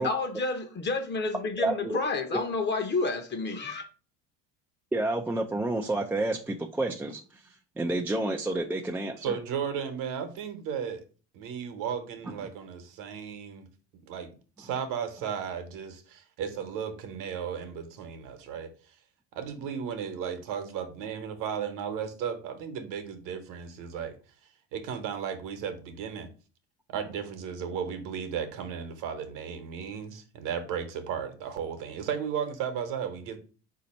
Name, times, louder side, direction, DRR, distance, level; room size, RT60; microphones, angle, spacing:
voice 1, 0.0-3.9, left 3 dB, 30° left, 7 dB, 0.8 m, -30 dB
voice 2, 1.6-2.0 2.3-2.4 4.9-9.4, right 2 dB, 5° right, 1 dB, 0.3 m, -30 dB
voice 3, 9.2-11.0 11.3-13.7 14.1-18.9 19.3-24.2 24.7-26.3 26.9-33.4, right 7 dB, 65° right, 7 dB, 1.0 m, -35 dB
4.1 x 2.8 x 4.1 m, 0.36 s
supercardioid pair, 85°, 35 cm